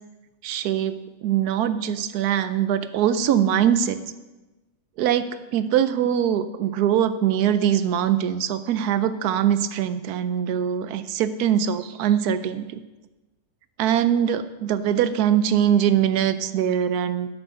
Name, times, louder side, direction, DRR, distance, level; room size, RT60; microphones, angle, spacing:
voice 1, 0.4-1.0 1.2-4.0 5.0-12.8 13.8-17.3, right 9 dB, 85° right, 12 dB, 1.1 m, -22 dB
9.7 x 6.2 x 6.4 m, 1.1 s
omnidirectional pair, 1.6 m